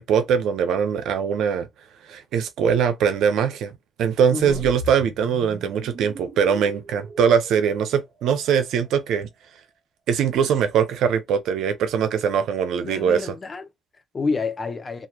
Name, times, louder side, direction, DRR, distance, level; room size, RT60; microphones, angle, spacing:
voice 1, 0.0-1.7 2.1-9.3 10.1-13.3, right 7 dB, 80° right, 0.6 m, -22 dB
voice 2, 4.3-4.7 12.8-15.1, left 4 dB, 35° left, 0.7 m, -29 dB
sound 1, 4.5-8.7, right 1 dB, 50° right, 1.0 m, -39 dB
3.0 x 2.4 x 2.2 m
cardioid pair, 90°, 0 cm